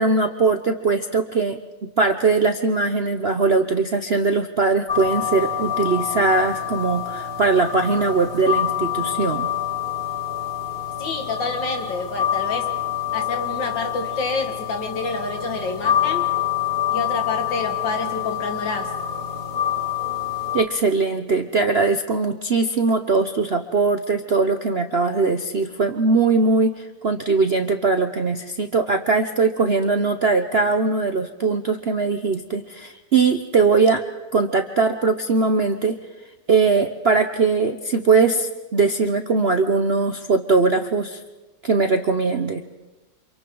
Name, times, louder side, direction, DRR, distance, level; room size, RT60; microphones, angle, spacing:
voice 1, 0.0-9.5 20.5-34.0 34.3-36.0 36.5-41.2 41.6-42.6, right 4 dB, 50° right, 6 dB, 0.8 m, -20 dB
sound 1, 4.9-20.6, left 9 dB, 35° left, 1.4 m, -26 dB
voice 2, 11.0-12.7 13.1-16.3 16.9-18.9, left 3 dB, 70° left, 4 dB, 2.6 m, -28 dB
29.0 x 27.0 x 3.9 m, 1.1 s
omnidirectional pair, 2.1 m